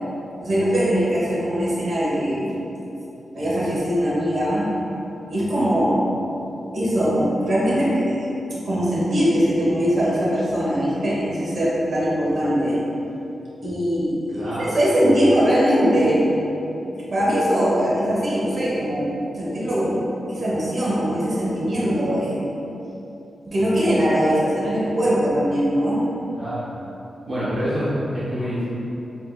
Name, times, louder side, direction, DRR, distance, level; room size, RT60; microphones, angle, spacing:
voice 1, 0.4-2.5 3.3-4.7 5.3-6.0 6.7-8.3 8.6-12.8 13.6-16.3 17.1-22.4 23.4-26.0, equal, 60° right, -8 dB, 1.3 m, -21 dB
voice 2, 14.3-14.6 26.3-26.6 27.3-28.6, equal, 80° right, -12 dB, 1.0 m, -26 dB
4.4 x 3.6 x 2.4 m, 2.9 s
cardioid pair, 65°, 0 cm